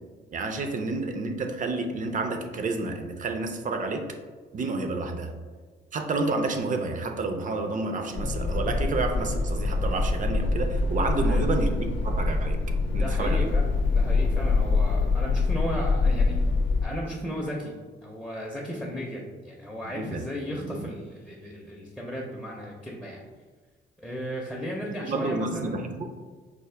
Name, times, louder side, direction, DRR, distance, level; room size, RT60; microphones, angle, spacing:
voice 1, 0.3-4.1 4.5-5.3 5.9-12.6 12.9-13.5 19.9-20.2 20.6-20.9 25.0-26.1, right 3 dB, 40° right, 6 dB, 0.5 m, -30 dB
sound 1, 8.2-16.9, left 3 dB, 65° left, 0.6 m, -25 dB
voice 2, 11.1-11.4 12.9-16.4 16.8-17.7 18.0-23.2 24.0-25.8, equal, 5° left, -2 dB, 0.5 m, -35 dB
4.5 x 2.1 x 3.3 m, 1.4 s
cardioid pair, 90°, 20 cm